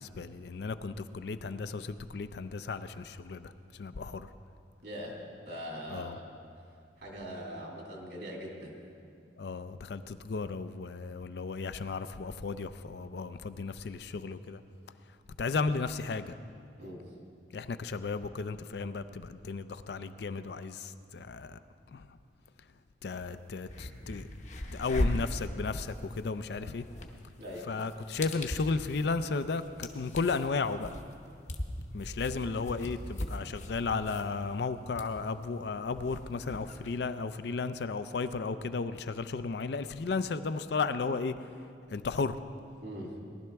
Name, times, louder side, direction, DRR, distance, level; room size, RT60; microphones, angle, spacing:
voice 1, 0.0-3.5 3.8-4.3 5.9-6.2 9.4-14.6 15.4-16.3 17.5-21.6 21.9-22.1 23.0-24.3 24.7-26.9 27.7-30.9 31.9-41.4 41.9-42.4, left 4 dB, 60° left, 11 dB, 0.4 m, -34 dB
voice 2, 4.8-6.3 7.0-8.7 16.8-17.1 27.4-27.7 42.8-43.2, equal, 65° right, -2 dB, 2.5 m, -41 dB
sound 1, 23.2-23.3 23.6-37.0, left 1 dB, 40° left, 0.8 m, -39 dB
18.5 x 12.0 x 3.5 m, 2.3 s
head